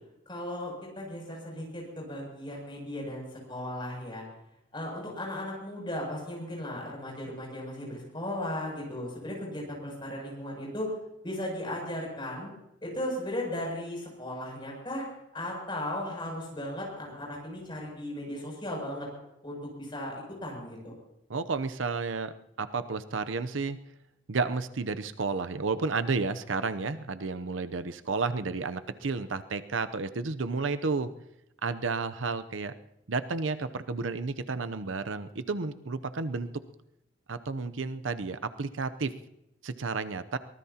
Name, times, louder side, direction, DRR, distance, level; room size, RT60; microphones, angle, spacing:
voice 1, 0.3-4.2 4.7-10.9 11.2-12.5 12.8-15.0 15.3-19.1 19.4-20.9, left 1 dB, 25° left, -2 dB, 7.3 m, -36 dB
voice 2, 21.3-23.8 24.3-31.1 31.6-32.7 33.1-36.5 37.3-39.1 39.6-40.4, right 4 dB, 90° right, 11 dB, 0.7 m, -31 dB
23.5 x 19.0 x 2.9 m, 0.85 s
head